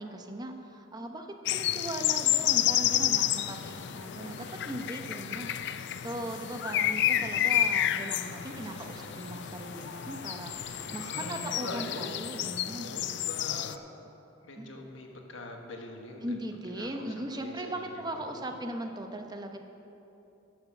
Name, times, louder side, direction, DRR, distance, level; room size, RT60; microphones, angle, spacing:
voice 1, 0.0-12.9 14.6-14.7 16.2-19.6, right 1 dB, 20° right, 4 dB, 0.9 m, -39 dB
sound 1, 1.5-13.8, left 11 dB, 60° left, 0.4 m, -30 dB
sound 2, 2.8-11.2, right 1 dB, 40° right, 1.8 m, -52 dB
voice 2, 11.0-13.9 14.4-16.4 16.7-18.6, left 1 dB, 75° left, 2 dB, 1.4 m, -43 dB
11.5 x 7.2 x 7.1 m, 2.8 s
head